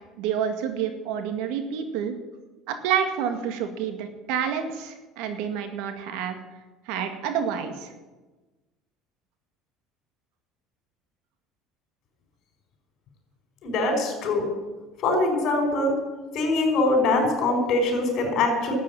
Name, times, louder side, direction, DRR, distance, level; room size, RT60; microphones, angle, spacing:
voice 1, 0.2-2.1 2.7-6.4 6.9-7.9, right 8 dB, 75° right, 7 dB, 2.0 m, -28 dB
voice 2, 13.6-14.5 15.0-16.0 16.3-18.8, left 2 dB, 55° left, 3 dB, 5.4 m, -23 dB
12.5 x 8.3 x 10.0 m, 1.2 s
supercardioid pair, 95°, 0 cm